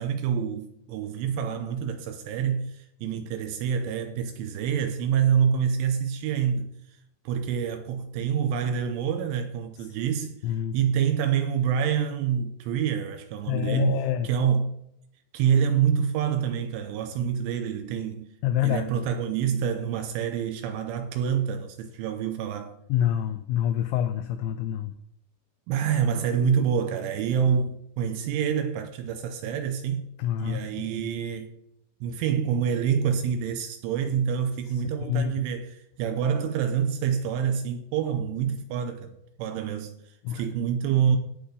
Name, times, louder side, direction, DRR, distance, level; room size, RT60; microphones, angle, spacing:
voice 1, 0.0-6.7 7.3-10.4 10.7-14.8 15.3-18.3 18.6-22.7 25.7-30.0 30.4-31.5 32.0-39.9 40.3-41.2, right 8 dB, 85° right, 3.0 m, -27 dB
voice 2, 10.4-10.8 13.5-14.3 18.4-18.9 22.9-24.9 30.2-30.9 35.1-35.3 40.2-40.4, left 10 dB, 90° left, 2.6 m, -26 dB
18.0 x 6.4 x 3.9 m
omnidirectional pair, 6.0 m